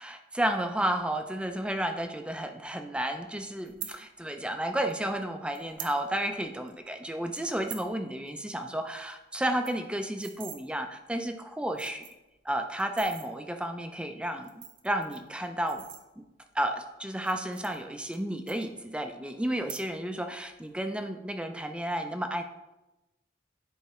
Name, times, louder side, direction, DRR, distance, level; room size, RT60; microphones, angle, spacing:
voice 1, 0.0-12.1 12.4-15.8 16.2-16.3 16.5-22.4, right 1 dB, 5° right, 6 dB, 0.4 m, -32 dB
sound 1, 3.6-3.9 4.9-5.0 5.5-6.0 6.3-6.4 6.7-6.9 7.3-7.9 8.3-8.4 8.7-8.8 9.1-9.2 9.4-10.6 11.3-11.4 11.7-12.3 12.8-13.3 14.3-16.4 17.1-18.2 18.5-19.1 19.5-20.1 20.4-20.8, right 10 dB, 85° right, 0.7 m, -44 dB
10.5 x 4.6 x 3.0 m, 1.0 s
head